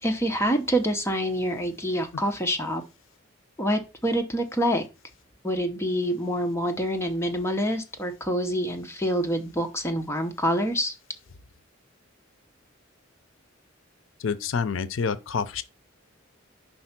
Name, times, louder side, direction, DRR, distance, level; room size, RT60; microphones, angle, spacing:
voice 1, 0.0-2.8 3.6-4.8 5.4-11.0, equal, 15° left, 0.8 m, -26 dB
voice 2, 14.2-15.6, left 5 dB, 75° left, 0.5 m, -28 dB
5.4 x 4.4 x 5.8 m
head